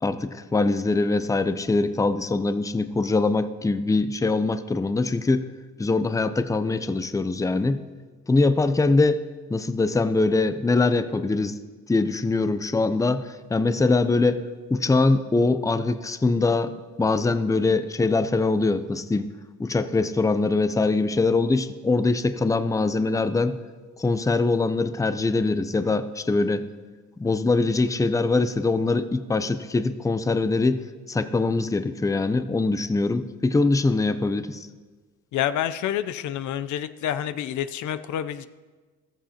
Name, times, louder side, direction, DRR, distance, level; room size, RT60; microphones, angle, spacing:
voice 1, 0.0-5.5 5.8-7.8 8.3-9.2 9.5-11.6 11.9-14.4 14.7-16.7 17.0-19.3 19.6-23.6 24.0-26.7 27.2-30.8 31.1-34.7, left 3 dB, 10° left, 12 dB, 0.5 m, -23 dB
voice 2, 35.3-38.5, left 10 dB, 75° left, 12 dB, 0.5 m, -28 dB
14.5 x 13.5 x 2.9 m, 1.4 s
cardioid pair, 90°, 30 cm